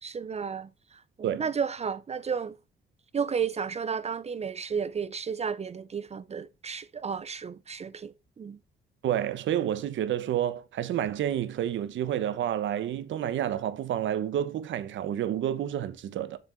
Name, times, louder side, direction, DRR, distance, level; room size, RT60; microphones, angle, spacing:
voice 1, 0.0-2.6 3.1-8.6, right 6 dB, 35° right, 0.5 m, -33 dB
voice 2, 9.0-16.4, right 10 dB, 75° right, 1.0 m, -29 dB
7.0 x 6.9 x 4.4 m
cardioid pair, 90°, 20 cm